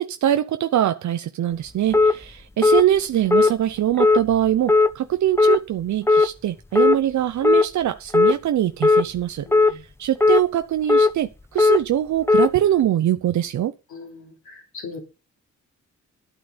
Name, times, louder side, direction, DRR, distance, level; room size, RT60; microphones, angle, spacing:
voice 1, 0.0-13.7, right 11 dB, 75° right, 0.8 m, -23 dB
sound 1, 1.9-2.1 2.6-2.8 3.3-3.5 4.0-4.2 4.7-4.9 5.4-5.6 6.1-6.3 6.7-7.0 7.4-7.7 8.1-8.3 8.8-9.0 9.5-9.7 10.2-10.4 10.9-11.1 11.6-11.8 12.3-12.5, left 3 dB, 10° left, 0.7 m, -15 dB
voice 2, 9.4-9.8 13.9-15.0, left 4 dB, 75° left, 3.4 m, -39 dB
11.5 x 8.9 x 5.2 m
cardioid pair, 100°, 30 cm